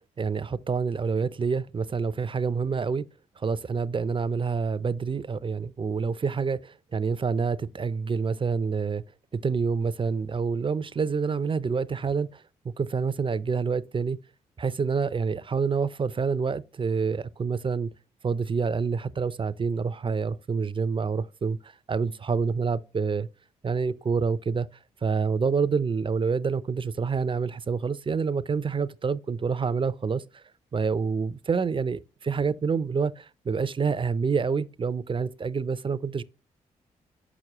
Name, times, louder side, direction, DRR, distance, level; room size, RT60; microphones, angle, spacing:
voice 1, 0.2-3.1 3.4-9.0 9.3-14.2 14.6-17.9 18.2-23.3 23.6-24.7 25.0-30.4 30.7-36.2, right 5 dB, 30° right, 0.5 m, -27 dB
6.2 x 6.1 x 2.9 m
hypercardioid pair, 40°, 16 cm